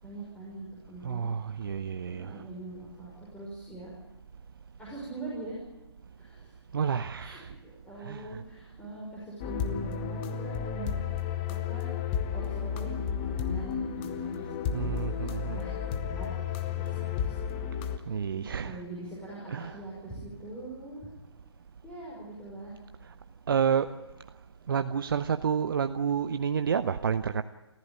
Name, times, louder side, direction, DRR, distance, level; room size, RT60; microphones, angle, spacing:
voice 1, 0.0-1.3 2.1-3.9 4.8-5.6 6.2-6.6 7.2-11.9 12.3-12.9 13.2-17.4 17.8-18.0 18.3-21.1 21.8-22.8, right 2 dB, 10° left, 5.5 m, -43 dB
voice 2, 1.0-2.4 6.7-7.5 8.0-8.4 14.7-15.6 18.1-18.8 19.5-19.8 23.5-23.9 24.7-27.4, right 7 dB, 50° right, 0.8 m, -29 dB
sound 1, 9.4-18.0, left 8 dB, 25° left, 1.3 m, -32 dB
28.0 x 15.0 x 9.3 m
figure-of-eight pair, 135°, 14 cm